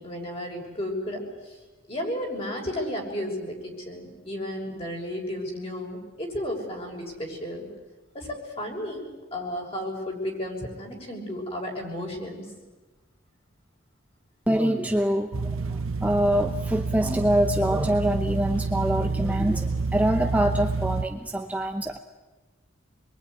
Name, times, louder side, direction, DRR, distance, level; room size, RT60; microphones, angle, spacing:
voice 1, 0.0-1.5 1.9-7.7 8.1-12.4, left 1 dB, 30° left, 0 dB, 6.2 m, -33 dB
voice 2, 14.5-15.5 16.0-22.0, right 1 dB, 5° right, 4 dB, 0.9 m, -25 dB
sound 1, 15.3-21.0, right 4 dB, 85° right, 0.9 m, -28 dB
26.5 x 22.5 x 9.7 m, 1.2 s
head